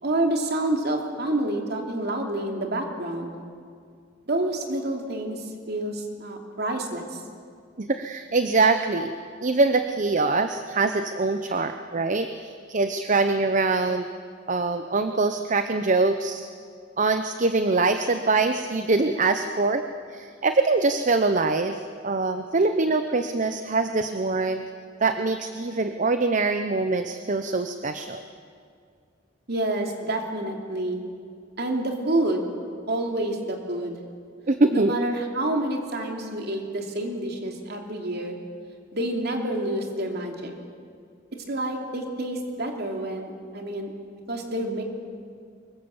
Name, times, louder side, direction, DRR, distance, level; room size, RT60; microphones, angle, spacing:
voice 1, 0.0-3.3 4.3-7.2 29.5-31.0 31.6-32.5 32.9-34.0 34.7-38.4 38.9-40.5 41.3-43.9 44.3-44.8, right 1 dB, 55° right, 2 dB, 3.0 m, -28 dB
voice 2, 7.8-9.1 9.4-14.1 14.5-16.5 17.0-19.8 20.1-24.6 25.0-28.2 34.5-34.9, right 3 dB, 40° right, 8 dB, 0.8 m, -23 dB
24.5 x 22.0 x 7.2 m, 2.2 s
head